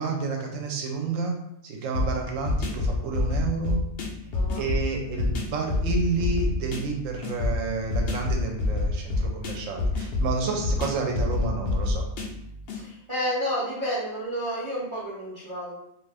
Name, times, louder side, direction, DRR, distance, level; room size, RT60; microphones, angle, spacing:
voice 1, 0.0-1.3 1.6-3.8 4.6-12.0, right 4 dB, 70° right, 1 dB, 0.9 m, -30 dB
sound 1, 1.9-12.8, left 2 dB, 65° left, 0.6 m, -28 dB
voice 2, 4.3-4.7 10.4-10.6 12.7-15.8, equal, 35° right, -7 dB, 0.5 m, -31 dB
2.5 x 2.4 x 3.3 m, 0.78 s
omnidirectional pair, 1.5 m